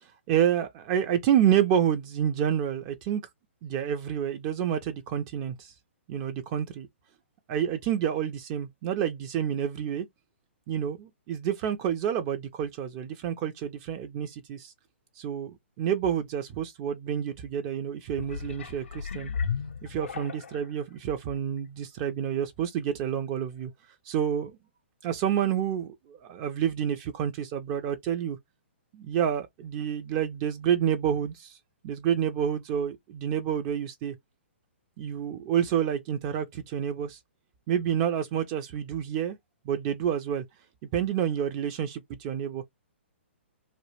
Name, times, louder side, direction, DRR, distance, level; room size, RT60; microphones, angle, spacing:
voice 1, 0.3-3.2 3.6-5.7 6.1-6.9 7.5-10.1 10.7-14.7 15.2-19.3 19.8-23.7 24.0-24.5 25.0-28.4 28.9-31.6 31.8-34.1 35.0-37.2 37.7-39.4 39.7-40.4 40.9-42.6, right 9 dB, 30° right, 0.4 m, -28 dB
sound 1, 18.1-20.7 21.3-21.4, left 6 dB, 70° left, 0.4 m, -34 dB
2.3 x 2.1 x 3.0 m
figure-of-eight pair, 120°, 7 cm